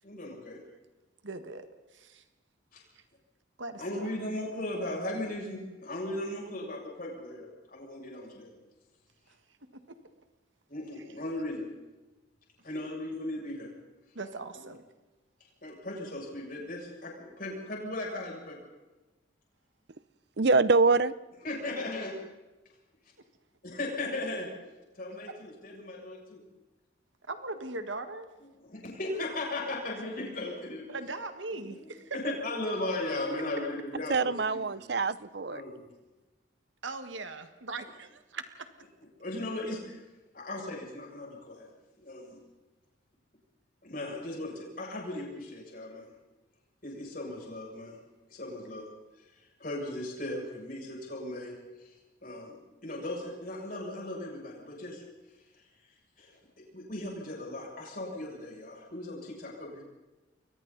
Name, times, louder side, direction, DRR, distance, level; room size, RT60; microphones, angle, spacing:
voice 1, 0.0-0.6 2.7-2.8 3.8-8.5 10.7-11.7 12.6-13.7 14.5-14.6 15.6-18.6 21.4-22.2 23.6-24.5 24.9-26.4 28.6-30.9 31.6-34.9 35.5-35.8 39.2-40.0 40.3-41.7 42.0-42.4 43.8-46.1 46.8-48.0 48.3-48.9 49.2-55.0 55.5-55.6 56.2-59.8, left 1 dB, 45° left, -2 dB, 7.2 m, -37 dB
voice 2, 1.2-1.6 1.9-2.2 3.6-4.1 9.7-10.0 14.1-14.8 27.3-28.3 30.9-32.2 36.8-38.7, right 3 dB, 75° right, 8 dB, 1.7 m, -39 dB
voice 3, 20.4-21.1 34.1-35.6, right 3 dB, 55° right, 17 dB, 0.7 m, -24 dB
30.0 x 22.5 x 4.1 m, 1.1 s
head